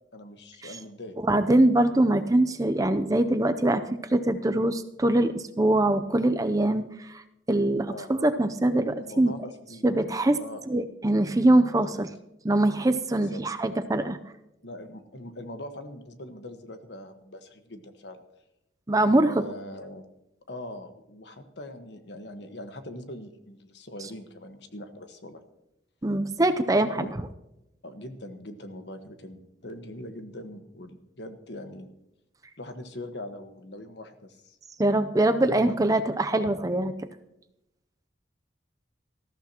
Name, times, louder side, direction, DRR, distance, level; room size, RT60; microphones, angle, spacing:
voice 1, 0.1-1.2 7.9-8.1 9.0-9.8 10.4-10.8 11.7-12.0 13.1-13.4 14.6-18.2 19.1-20.0 20.5-25.4 26.9-27.1 27.8-31.9 32.6-34.6 35.2-35.9 36.3-36.5, left 1 dB, 65° left, 7 dB, 1.3 m, -42 dB
voice 2, 1.3-3.8 4.1-7.2 7.5-9.3 9.8-10.4 10.7-12.1 12.4-14.2 18.9-19.4 26.0-27.1 34.8-36.9, right 1 dB, 20° right, 9 dB, 0.5 m, -23 dB
19.0 x 14.0 x 2.9 m, 0.87 s
head